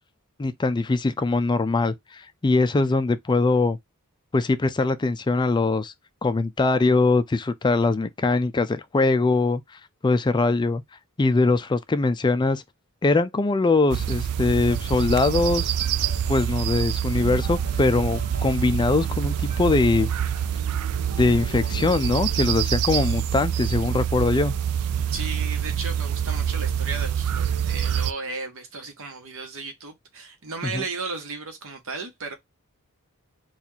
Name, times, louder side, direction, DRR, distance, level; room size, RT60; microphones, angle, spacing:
voice 1, 0.4-3.8 4.3-5.9 6.2-9.6 10.0-10.8 11.2-12.6 13.0-15.7 16.3-20.1 21.2-24.6 30.6-30.8, left 3 dB, 20° left, 0.3 m, -22 dB
sound 1, 13.9-28.1, right 9 dB, 85° right, 0.4 m, -26 dB
sound 2, 14.4-22.3, right 1 dB, 40° right, 1.1 m, -43 dB
voice 2, 25.1-32.3, right 4 dB, 65° right, 1.1 m, -35 dB
4.2 x 2.4 x 2.7 m
head